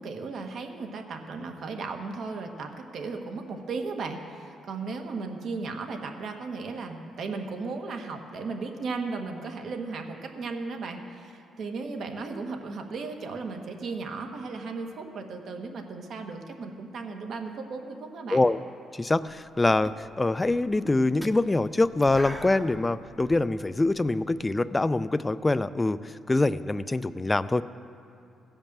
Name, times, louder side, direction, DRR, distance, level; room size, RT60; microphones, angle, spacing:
voice 1, 0.0-18.4, right 4 dB, 65° right, 4 dB, 1.3 m, -36 dB
voice 2, 18.9-27.6, left 2 dB, 20° left, 14 dB, 0.3 m, -24 dB
sound 1, 19.2-19.5 19.8-24.8, equal, 5° right, 0.7 m, -44 dB
16.0 x 5.3 x 7.3 m, 2.6 s
cardioid pair, 90°, 0 cm